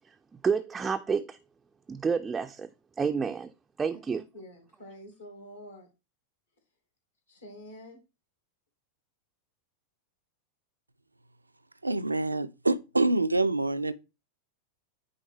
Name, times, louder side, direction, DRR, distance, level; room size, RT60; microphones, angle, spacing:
voice 1, 0.4-1.4 1.9-2.7 3.0-4.2, right 5 dB, 15° right, 0.3 m, -29 dB
voice 2, 3.9-5.9 7.3-8.0, equal, 75° left, 2.3 m, -47 dB
voice 3, 11.8-13.9, right 2 dB, 85° right, 0.4 m, -26 dB
9.3 x 3.7 x 3.4 m
figure-of-eight pair, 90°, 0 cm